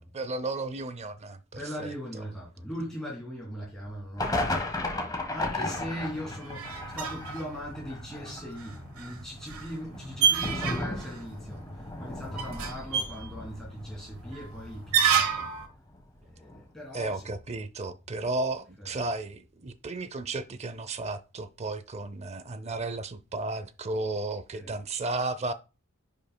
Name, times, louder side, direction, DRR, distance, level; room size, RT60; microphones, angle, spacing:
voice 1, 0.0-1.4 1.8-1.9 16.9-25.5, right 2 dB, 30° right, 0.5 m, -33 dB
voice 2, 1.5-15.5 16.2-17.3 18.8-18.9 24.5-24.8, equal, ahead, 2.7 m, -40 dB
sound 1, 3.8-3.9 4.2-15.7 15.9-16.0 16.5-16.6, left 2 dB, 20° left, 1.3 m, -36 dB
sound 2, 5.9-15.7, right 7 dB, 85° right, 1.3 m, -31 dB
10.5 x 5.1 x 2.2 m
head